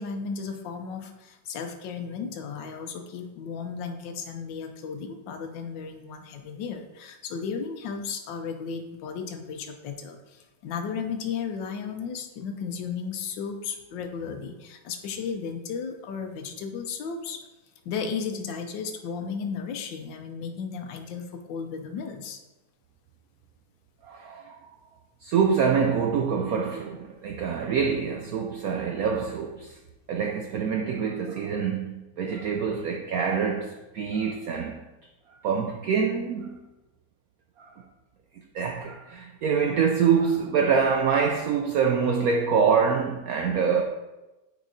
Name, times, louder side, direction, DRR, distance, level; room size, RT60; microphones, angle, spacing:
voice 1, 0.0-17.4 17.8-22.4 27.3-27.4, left 6 dB, 75° left, 6 dB, 1.4 m, -34 dB
voice 2, 24.1-24.7 25.2-29.8 30.1-34.8 35.4-36.6 37.6-37.7 38.5-43.8, right 6 dB, 80° right, 2 dB, 0.8 m, -25 dB
9.1 x 4.6 x 2.7 m, 1.0 s
omnidirectional pair, 2.1 m